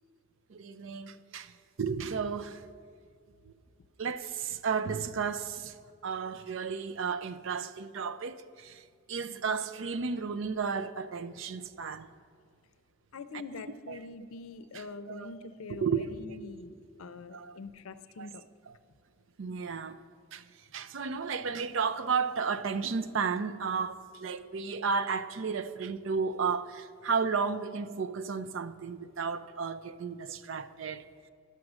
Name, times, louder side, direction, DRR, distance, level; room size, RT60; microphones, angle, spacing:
voice 1, 0.5-1.5 1.8-2.6 4.0-5.7 6.0-8.8 9.1-12.1 13.3-13.4 13.9-14.0 14.7-15.3 15.7-16.2 17.3-17.6 18.2-18.3 19.4-20.0 20.3-20.4 20.7-31.0, right 5 dB, 65° right, 0.5 m, -33 dB
voice 2, 13.1-18.4, left 3 dB, 85° left, 0.5 m, -44 dB
11.5 x 6.1 x 6.3 m
head